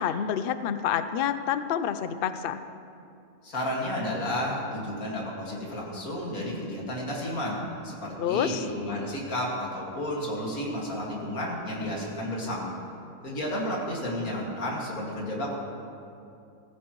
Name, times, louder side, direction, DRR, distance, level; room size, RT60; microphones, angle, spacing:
voice 1, 0.0-2.6 8.2-8.6, left 9 dB, 90° left, 11 dB, 0.5 m, -28 dB
voice 2, 3.4-12.7 13.2-15.6, left 1 dB, 70° left, -3 dB, 2.6 m, -32 dB
15.5 x 15.0 x 3.1 m, 2.6 s
omnidirectional pair, 1.6 m